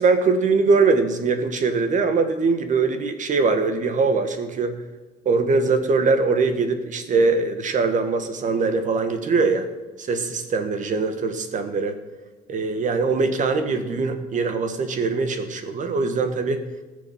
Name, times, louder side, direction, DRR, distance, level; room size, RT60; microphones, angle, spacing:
voice 1, 0.0-4.8 5.3-9.7 10.0-12.0 12.5-16.6, right 4 dB, 50° right, 8 dB, 1.6 m, -22 dB
19.0 x 6.8 x 5.9 m, 1.2 s
cardioid pair, 110°, 17 cm